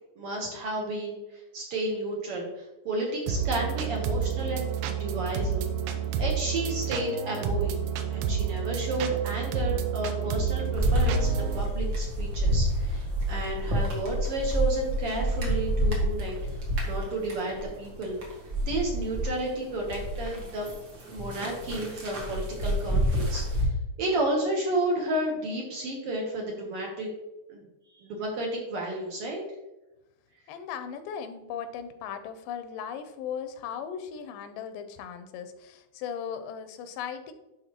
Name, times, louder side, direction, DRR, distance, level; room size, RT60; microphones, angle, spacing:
voice 1, 0.2-5.6 6.2-7.8 8.1-16.4 16.8-18.2 18.6-20.7 21.1-23.7 24.0-27.1 27.5-27.6 27.9-29.4, right 1 dB, 65° right, -1 dB, 1.5 m, -32 dB
sound 1, 3.3-11.6, right 7 dB, 90° right, 2.4 m, -30 dB
sound 2, 10.7-19.3 19.7-23.7, right 1 dB, 45° right, 1.7 m, -28 dB
voice 2, 30.5-37.3, left 7 dB, 90° left, 9 dB, 2.3 m, -37 dB
11.0 x 4.0 x 2.9 m, 0.99 s
omnidirectional pair, 3.8 m